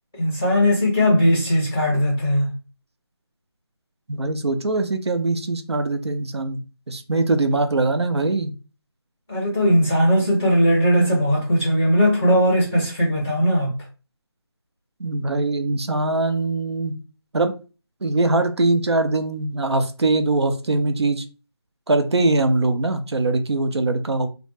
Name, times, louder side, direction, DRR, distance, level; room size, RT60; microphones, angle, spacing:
voice 1, 0.1-2.5 9.3-13.7, equal, 5° left, 0.7 m, -19 dB
voice 2, 4.1-6.6 6.9-8.5 15.0-17.0 17.3-17.5 18.0-21.2 21.9-24.3, right 2 dB, 80° right, 0.5 m, -22 dB
2.1 x 2.0 x 3.0 m
figure-of-eight pair, 180°, 14 cm